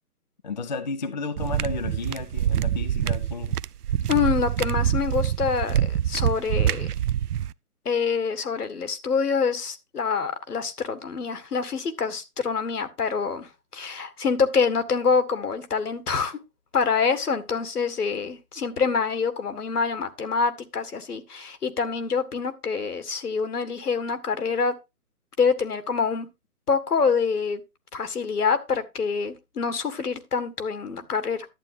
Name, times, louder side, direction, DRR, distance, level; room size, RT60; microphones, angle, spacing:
voice 1, 0.4-3.6, left 4 dB, 30° left, 0.6 m, -33 dB
sound 1, 1.4-7.5, right 10 dB, 80° right, 0.6 m, -25 dB
voice 2, 4.1-6.9 7.9-13.5 13.7-16.4 16.7-24.7 25.4-26.3 26.7-27.6 27.9-31.5, left 5 dB, 75° left, 1.8 m, -26 dB
11.0 x 8.7 x 2.7 m
hypercardioid pair, 155°, 46 cm